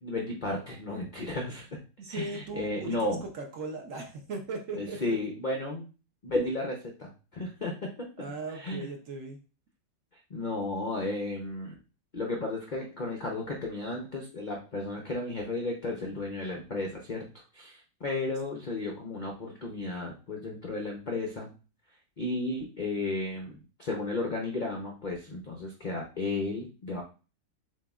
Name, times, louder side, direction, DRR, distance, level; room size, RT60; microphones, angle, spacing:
voice 1, 0.0-1.7 2.1-3.2 4.7-5.9 6.2-7.9 8.5-8.9 10.3-11.7 12.1-17.3 17.5-21.5 22.2-27.0, left 2 dB, 80° left, 0 dB, 0.4 m, -33 dB
voice 2, 2.0-5.2 8.2-9.4, right 3 dB, 60° right, 2 dB, 0.9 m, -38 dB
7.3 x 2.8 x 2.3 m, 0.34 s
omnidirectional pair, 1.9 m